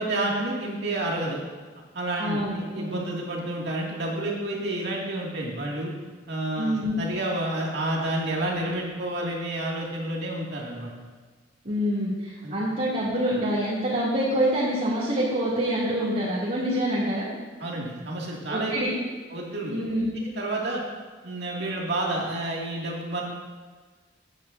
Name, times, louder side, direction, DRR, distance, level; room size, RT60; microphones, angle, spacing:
voice 1, 0.0-1.4 1.9-5.9 6.3-10.9 12.4-12.6 17.6-18.7 19.3-19.8 20.1-20.8 21.2-23.2, right 1 dB, 60° right, -3 dB, 2.3 m, -30 dB
voice 2, 2.2-3.0 6.6-7.0 11.6-17.3 18.5-18.9 19.7-20.0, equal, 45° right, -11 dB, 2.7 m, -26 dB
15.5 x 9.3 x 2.7 m, 1.5 s
head